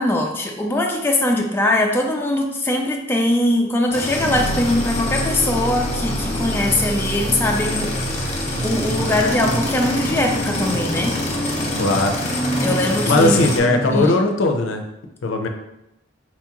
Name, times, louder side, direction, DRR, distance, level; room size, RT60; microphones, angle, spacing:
voice 1, 0.0-7.9 8.6-11.2 12.6-13.4 13.9-14.2, left 1 dB, 10° left, 1 dB, 0.3 m, -21 dB
sound 1, 3.9-13.6, left 1 dB, 35° left, 0.8 m, -26 dB
sound 2, 4.1-13.2, right 1 dB, 65° right, 0.4 m, -32 dB
sound 3, 8.5-14.1, right 1 dB, 10° right, 0.8 m, -27 dB
voice 2, 11.8-12.2 13.1-14.8 15.2-15.5, left 2 dB, 85° left, 5 dB, 0.4 m, -18 dB
4.2 x 2.3 x 2.9 m, 0.89 s
head